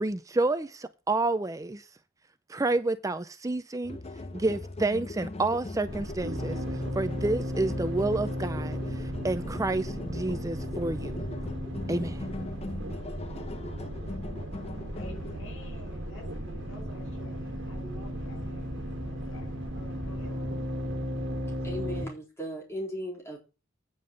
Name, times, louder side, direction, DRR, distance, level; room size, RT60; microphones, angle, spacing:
voice 1, 0.0-1.8 2.5-4.0 4.3-6.6 7.0-11.3 11.9-12.2, right 2 dB, 15° right, 0.4 m, -29 dB
sound 1, 3.8-15.4, left 2 dB, 30° left, 0.7 m, -40 dB
sound 2, 5.9-22.1, equal, 60° right, 1.9 m, -35 dB
Musical instrument, 14.9-20.5, left 4 dB, 90° left, 1.2 m, -51 dB
voice 2, 14.9-19.2 19.7-20.5, right 1 dB, 75° left, 6.5 m, -49 dB
voice 3, 21.6-23.4, equal, 15° left, 3.9 m, -36 dB
9.5 x 5.4 x 7.7 m
head